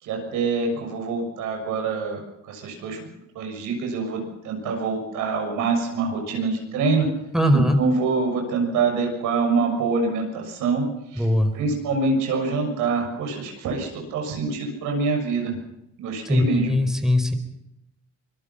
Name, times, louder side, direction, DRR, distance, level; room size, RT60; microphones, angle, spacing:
voice 1, 0.0-3.0 3.4-7.1 7.5-10.9 11.1-11.3 11.5-15.6 16.0-16.7, right 4 dB, 90° right, 3 dB, 6.8 m, -25 dB
voice 2, 7.3-7.8 11.2-11.5 16.2-17.3, left 1 dB, ahead, 6 dB, 4.5 m, -20 dB
24.5 x 22.0 x 5.8 m, 0.84 s
cardioid pair, 90°, 30 cm